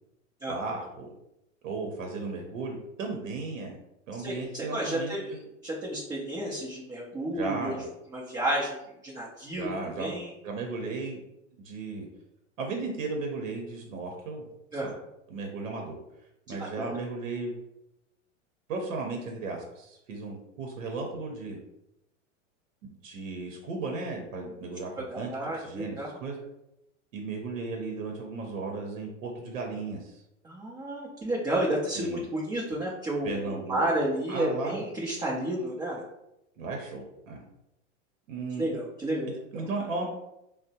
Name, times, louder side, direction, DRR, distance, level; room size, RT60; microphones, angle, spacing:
voice 1, 0.5-1.1 1.6-3.7 4.1-5.1 7.3-7.8 9.5-10.1 10.4-11.2 11.6-12.1 12.6-14.9 15.3-16.0 16.5-17.5 18.7-21.6 22.8-26.4 27.1-30.2 31.9-32.2 33.2-33.8 34.3-34.9 36.6-37.4 38.3-38.6 39.5-40.1, right 3 dB, 80° right, 1 dB, 0.7 m, -35 dB
voice 2, 4.2-5.2 5.6-7.7 8.1-8.8 9.0-9.7 10.0-10.3 14.7-14.9 16.6-16.9 25.0-26.1 30.4-36.0 38.6-39.3, right 1 dB, 10° right, -5 dB, 0.4 m, -31 dB
3.5 x 2.0 x 2.7 m, 0.85 s
hypercardioid pair, 110°, 38 cm